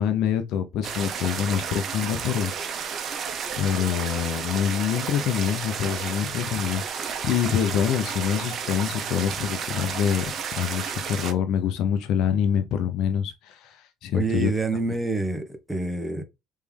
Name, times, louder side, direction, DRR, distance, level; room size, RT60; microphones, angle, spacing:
voice 1, 0.0-3.0 3.6-14.5, left 9 dB, 65° left, 0.7 m, -26 dB
sound 1, 0.8-11.3, right 7 dB, 45° right, 0.8 m, -32 dB
voice 2, 14.1-16.2, right 3 dB, 10° right, 0.9 m, -27 dB
3.4 x 3.2 x 3.4 m
supercardioid pair, 90°, 0 cm